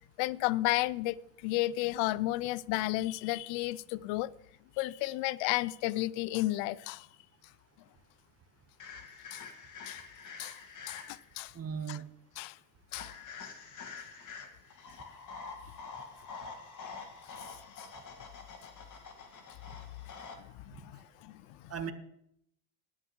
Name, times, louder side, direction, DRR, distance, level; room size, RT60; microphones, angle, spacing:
voice 1, 0.2-1.2 1.4-4.3 4.8-7.1 9.3-9.4 9.9-10.0 10.4-10.6 10.9-11.5 11.9-12.0 12.4-12.6 12.9-13.1 17.8-17.9 20.4-21.7, left 17 dB, 65° left, 20 dB, 0.6 m, -33 dB
sound 1, 8.8-11.4 12.9-20.4, left 5 dB, 40° left, 2.1 m, -47 dB
voice 2, 11.5-12.0 21.7-21.9, right 7 dB, 30° right, 9 dB, 1.3 m, -36 dB
20.0 x 9.0 x 3.2 m, 0.73 s
supercardioid pair, 95°, 47 cm